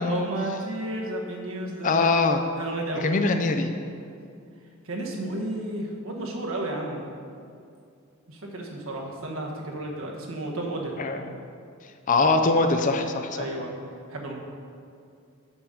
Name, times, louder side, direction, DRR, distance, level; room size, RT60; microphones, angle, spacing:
voice 1, 0.0-2.1 2.5-3.1 4.8-7.0 8.3-11.0 13.3-13.7 14.1-14.3, right 1 dB, 75° right, 0 dB, 1.2 m, -32 dB
voice 2, 1.8-2.5 3.0-3.7 11.0-11.2 12.1-13.5, left 3 dB, 40° left, 7 dB, 0.5 m, -22 dB
6.2 x 5.2 x 6.2 m, 2.4 s
head